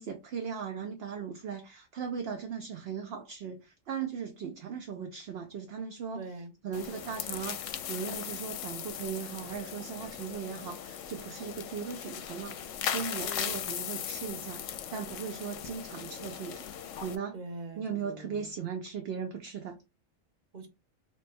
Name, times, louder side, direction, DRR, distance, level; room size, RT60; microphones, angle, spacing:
voice 1, 0.0-6.2 6.6-12.6 12.9-14.6 14.9-16.7 17.0-17.3 17.8-19.8, right 6 dB, 60° right, 0.7 m, -38 dB
voice 2, 6.1-6.5 13.2-13.6 17.3-18.5 20.5-20.7, right 2 dB, 40° right, 1.0 m, -43 dB
sound 1, 6.7-17.2, left 9 dB, 75° left, 0.9 m, -38 dB
3.1 x 2.2 x 4.1 m
omnidirectional pair, 1.3 m